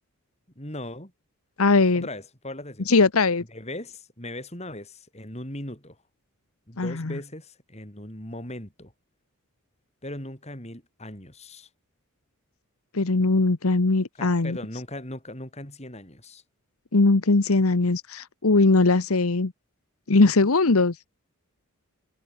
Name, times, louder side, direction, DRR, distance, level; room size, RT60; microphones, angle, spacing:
voice 1, 0.5-1.1 1.9-2.9 3.5-6.0 6.7-8.9 10.0-11.7 14.2-16.4, left 1 dB, 30° left, 6.6 m, -38 dB
voice 2, 1.6-2.1 2.9-3.4 6.8-7.2 12.9-14.6 16.9-19.5 20.1-21.0, left 3 dB, 75° left, 1.0 m, -20 dB
head